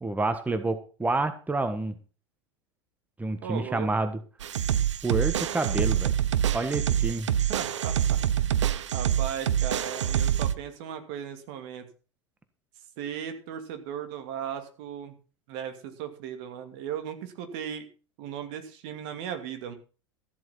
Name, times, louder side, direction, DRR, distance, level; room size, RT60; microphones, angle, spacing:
voice 1, 0.0-2.0 3.2-4.2 5.0-6.1 6.5-7.3, right 2 dB, 10° right, 10 dB, 1.5 m, -28 dB
voice 2, 3.4-3.9 7.5-11.9 13.0-15.2 15.5-17.9 18.2-19.7, right 8 dB, 60° right, 8 dB, 2.6 m, -37 dB
sound 1, 4.4-10.5, right 10 dB, 80° right, 0.9 m, -26 dB
14.0 x 7.8 x 5.8 m, 0.36 s
hypercardioid pair, 90°, 15 cm